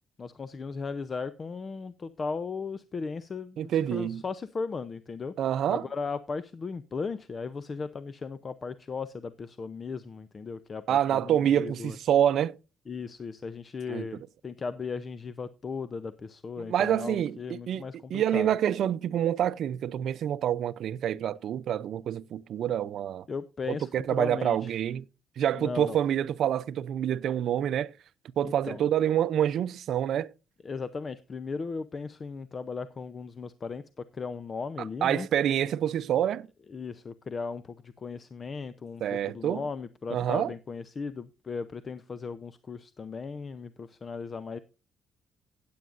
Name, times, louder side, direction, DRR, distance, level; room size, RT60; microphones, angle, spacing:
voice 1, 0.2-5.3 5.7-12.0 12.9-18.5 23.3-24.8 25.5-26.0 28.4-28.8 30.6-35.3 36.7-44.6, left 4 dB, 40° left, 0.6 m, -37 dB
voice 2, 3.6-4.2 5.4-5.8 10.9-12.5 13.9-14.1 16.6-23.2 23.9-25.0 25.4-27.9 28.4-30.3 35.0-36.5 39.0-39.6 40.1-40.5, right 10 dB, 70° right, 0.5 m, -27 dB
17.0 x 8.6 x 2.5 m
cardioid pair, 90°, 0 cm